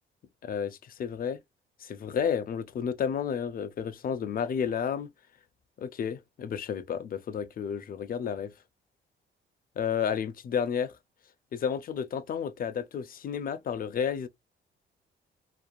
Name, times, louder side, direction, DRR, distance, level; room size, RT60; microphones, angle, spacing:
voice 1, 0.4-1.4 1.8-5.1 5.8-8.5 9.8-11.0 11.5-14.3, left 7 dB, 45° left, 0.4 m, -31 dB
2.9 x 2.2 x 2.4 m
cardioid pair, 90°, 20 cm